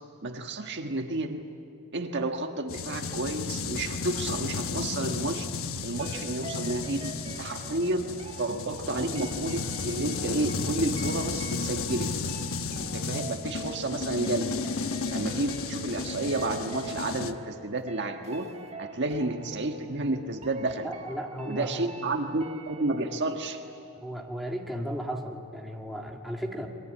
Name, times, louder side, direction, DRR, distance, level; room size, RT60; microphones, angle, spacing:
voice 1, 0.2-1.4 1.9-5.5 5.8-8.1 8.4-12.1 12.8-14.6 15.1-18.5 18.8-20.9 21.4-23.6, right 2 dB, 50° right, 4 dB, 1.5 m, -31 dB
sound 1, 2.7-17.3, left 4 dB, 65° left, 1.1 m, -33 dB
sound 2, 5.9-24.6 24.9-25.0, right 4 dB, 30° right, 1.5 m, -46 dB
voice 2, 20.8-21.9 24.0-26.7, equal, ahead, 0 dB, 2.3 m, -35 dB
28.5 x 22.5 x 8.7 m, 2.7 s
head